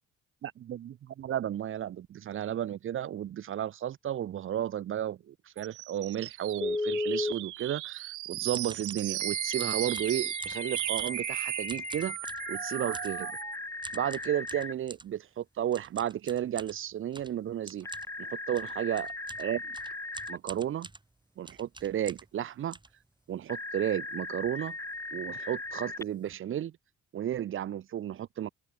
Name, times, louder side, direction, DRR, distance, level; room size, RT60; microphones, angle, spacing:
voice 1, 0.4-12.2 12.5-13.3 13.9-17.9 18.2-19.1 19.4-19.6 20.3-20.9 21.4-22.8 23.3-24.8 25.1-26.7 27.1-28.5, right 11 dB, 45° right, 0.5 m, -33 dB
sound 1, 5.6-13.6, right 17 dB, 80° right, 0.6 m, -36 dB
Telephone, 6.6-7.4 9.2-14.7 17.8-20.4 23.5-26.0, left 2 dB, 10° left, 0.6 m, -37 dB
sound 2, 8.5-9.1 9.6-11.3 11.6-12.5 12.9-13.2 13.8-15.1 15.7-22.4 22.7-23.6 24.0-24.1 24.3-24.6 24.9-25.1 25.7-25.8 26.0-26.3, right 2 dB, 15° right, 1.8 m, -47 dB
open air
cardioid pair, 90°, 30 cm